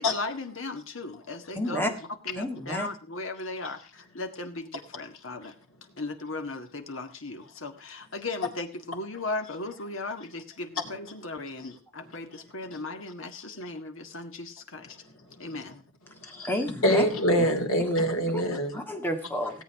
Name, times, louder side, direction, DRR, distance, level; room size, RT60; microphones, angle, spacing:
voice 1, 0.0-1.9 2.3-5.5 6.0-15.0 15.4-15.8, left 2 dB, 70° left, 6 dB, 1.8 m, -37 dB
voice 2, 1.5-1.9 2.3-2.9 16.2-17.1 17.4-17.5 17.8-17.9 18.3-18.4 18.7-19.6, equal, 10° left, 4 dB, 1.8 m, -31 dB
voice 3, 16.8-18.7, equal, 85° left, 4 dB, 2.9 m, -24 dB
17.0 x 8.4 x 4.8 m, 0.38 s
head